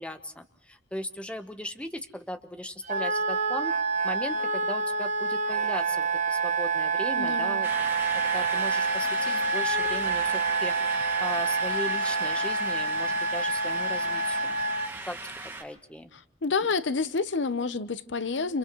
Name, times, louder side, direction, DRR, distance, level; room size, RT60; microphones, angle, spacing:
voice 1, 0.0-3.7 4.0-7.7 8.3-14.6 15.1-15.2 15.6-16.1, equal, 5° left, 1.0 m, -37 dB
Wind instrument woodwind instrument, 2.9-14.9, right 4 dB, 40° right, 0.8 m, -27 dB
voice 2, 7.2-7.6 16.4-18.6, left 4 dB, 75° left, 0.8 m, -28 dB
sound 1, 7.6-15.6, right 2 dB, 10° right, 2.0 m, -38 dB
30.0 x 29.0 x 3.1 m
head